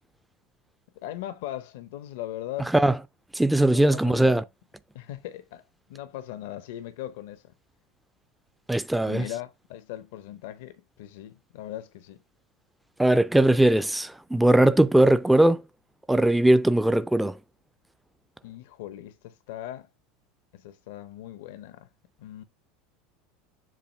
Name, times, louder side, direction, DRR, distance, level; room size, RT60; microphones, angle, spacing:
voice 1, 1.0-2.7 3.7-4.4 4.9-5.6 5.9-7.4 9.0-12.2 18.4-19.9 20.5-21.9 22.2-22.4, left 13 dB, 80° left, 0.6 m, -39 dB
voice 2, 3.3-4.4 8.7-9.3 13.0-15.6 16.1-17.4, right 1 dB, 5° right, 0.3 m, -20 dB
7.4 x 2.6 x 5.3 m
supercardioid pair, 130°, 0 cm